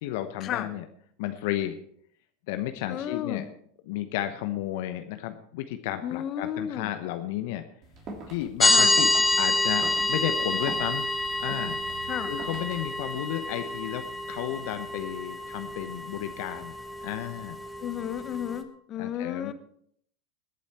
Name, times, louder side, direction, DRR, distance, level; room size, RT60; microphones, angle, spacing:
voice 1, 0.0-0.9 1.2-1.8 2.5-3.5 3.9-7.6 8.3-9.1 9.4-11.1 11.4-11.8 12.3-16.7 17.0-17.6 19.0-19.5, left 13 dB, 60° left, 8 dB, 0.9 m, -33 dB
voice 2, 2.9-3.4 6.0-6.9 8.6-8.9 12.1-12.3 17.8-19.5, left 10 dB, 40° left, 12 dB, 1.1 m, -33 dB
sound 1, 7.8-13.0, right 3 dB, 45° right, 3.3 m, -43 dB
sound 2, 8.6-18.6, left 2 dB, 15° left, 1.6 m, -28 dB
20.0 x 8.5 x 4.4 m, 0.66 s
hypercardioid pair, 85°, 0 cm